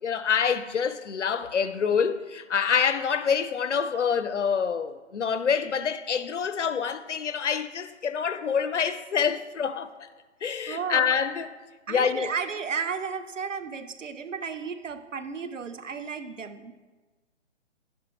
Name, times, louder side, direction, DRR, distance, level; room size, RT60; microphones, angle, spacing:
voice 1, 0.0-10.1 10.4-11.5 11.9-12.3, left 6 dB, 70° left, 0.9 m, -26 dB
voice 2, 10.7-11.1 11.9-16.7, right 6 dB, 80° right, 1.1 m, -33 dB
11.5 x 10.5 x 3.3 m
hypercardioid pair, 165°, 37 cm